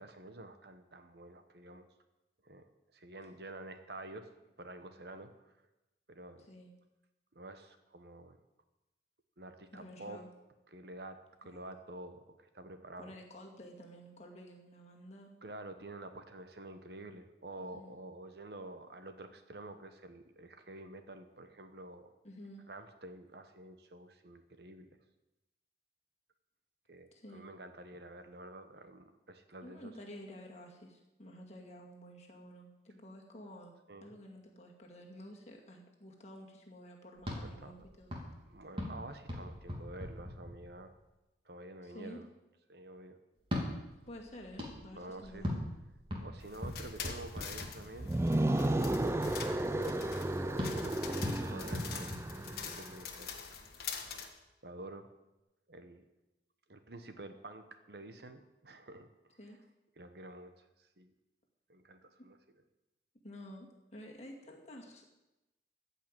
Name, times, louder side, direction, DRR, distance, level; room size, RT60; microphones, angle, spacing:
voice 1, 0.0-1.9 2.4-4.3 4.6-5.5 6.1-6.5 7.3-8.4 9.4-10.2 10.7-13.1 15.4-22.1 22.7-25.0 26.9-29.9 33.9-34.1 37.6-37.7 38.5-40.9 41.4-42.3 42.7-43.2 45.0-45.5 46.2-54.1 54.6-55.1 55.7-56.0 56.7-59.1 60.0-61.1 61.7-62.4, right 2 dB, 60° right, 8 dB, 1.1 m, -49 dB
voice 2, 6.4-6.7 9.7-10.3 11.4-11.7 13.0-15.3 17.6-17.9 22.2-22.6 27.1-27.4 29.6-33.7 34.0-38.2 41.8-42.2 44.1-45.5 59.4-59.6 63.2-65.0, equal, 35° left, 0 dB, 2.2 m, -51 dB
sound 1, 37.2-41.0 43.4-48.2 50.6-53.0, left 1 dB, 30° right, 2.8 m, -41 dB
sound 2, 46.4-54.3, left 7 dB, 55° left, 1.5 m, -45 dB
sound 3, 48.0-53.0, right 1 dB, 15° right, 0.4 m, -33 dB
14.5 x 5.7 x 9.0 m, 0.98 s
head